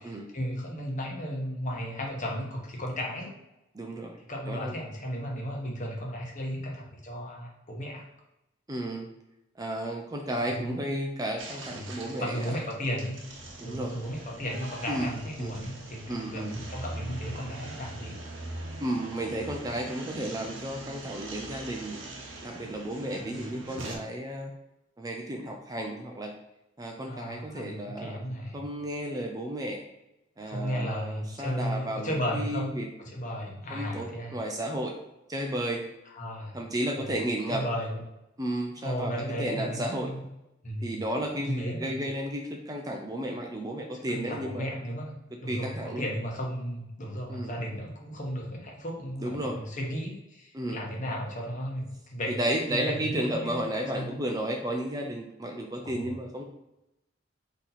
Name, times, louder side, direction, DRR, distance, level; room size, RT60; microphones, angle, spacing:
voice 1, 0.0-3.3 4.3-8.0 10.4-10.8 11.7-13.2 13.6-18.2 23.2-23.7 27.0-28.6 30.4-32.7 33.0-34.4 36.1-36.6 37.0-37.2 37.5-38.0 38.8-40.2 40.6-40.9 41.4-42.0 43.9-45.1 45.4-53.7 53.9-54.1 55.8-56.1, equal, 40° left, -1 dB, 1.1 m, -35 dB
voice 2, 3.7-4.2 4.5-4.7 8.7-9.1 9.6-12.4 13.6-13.9 14.9-15.1 15.4-15.5 16.1-16.5 18.8-22.0 22.4-24.5 25.0-26.3 26.8-28.2 28.5-29.8 30.4-32.9 33.7-34.9 35.3-35.8 36.5-37.6 38.4-39.1 39.4-40.1 40.8-44.7 45.5-46.0 47.3-47.5 49.2-49.6 50.5-50.8 52.3-56.4, right 1 dB, 20° right, 2 dB, 0.5 m, -33 dB
sound 1, 11.4-24.0, right 2 dB, 80° right, 0.9 m, -42 dB
4.2 x 3.0 x 4.0 m, 0.91 s
head